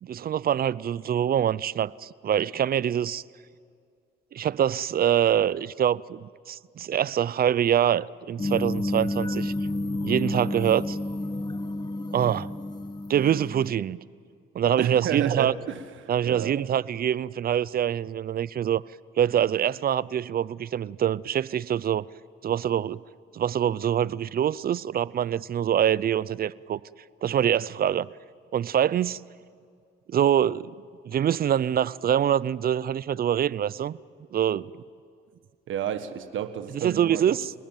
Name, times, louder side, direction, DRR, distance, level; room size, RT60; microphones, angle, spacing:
voice 1, 0.0-3.2 4.3-9.5 10.0-11.0 12.1-12.5 13.1-14.0 14.5-15.5 16.1-18.8 19.2-22.0 22.4-23.0 23.3-26.8 27.2-28.1 28.5-29.2 30.1-30.7 31.1-34.0 34.3-34.8 36.7-37.5, right 10 dB, 50° right, 0.6 m, -25 dB
sound 1, 8.4-13.7, left 2 dB, 20° left, 1.2 m, -30 dB
voice 2, 14.8-16.6 35.7-37.4, right 9 dB, 75° right, 1.6 m, -31 dB
29.0 x 19.5 x 9.1 m
cardioid pair, 90°, 20 cm